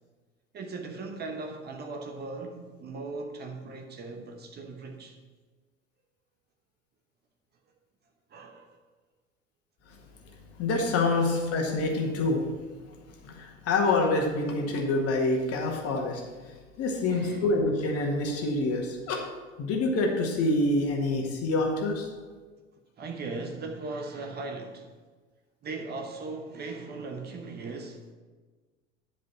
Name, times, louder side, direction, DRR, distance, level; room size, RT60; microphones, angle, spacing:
voice 1, 0.5-5.2 8.3-8.8 10.3-10.4 11.2-11.6 12.0-12.1 13.3-13.4 17.0-17.5 23.0-24.9 25.6-28.1, right 3 dB, 25° right, 1.0 m, -39 dB
voice 2, 10.6-12.4 13.2-16.2 16.8-19.3 19.6-22.1, left 2 dB, 40° left, 1.8 m, -26 dB
10.5 x 5.1 x 5.8 m
figure-of-eight pair, 75°, 38 cm